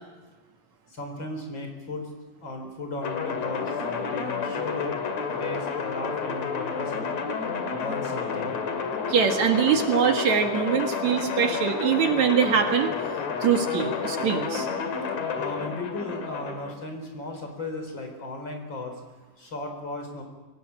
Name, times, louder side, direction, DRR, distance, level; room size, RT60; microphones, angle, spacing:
voice 1, 0.9-2.1 2.4-5.0 5.3-7.1 7.7-8.6 15.3-19.0 19.4-20.2, left 2 dB, 35° left, 3 dB, 4.9 m, -36 dB
sound 1, 3.0-16.7, left 5 dB, 60° left, 3.2 m, -30 dB
voice 2, 9.1-12.9 13.4-14.7, right 7 dB, 65° right, 4 dB, 3.0 m, -23 dB
23.5 x 17.5 x 8.7 m, 1.2 s
omnidirectional pair, 3.6 m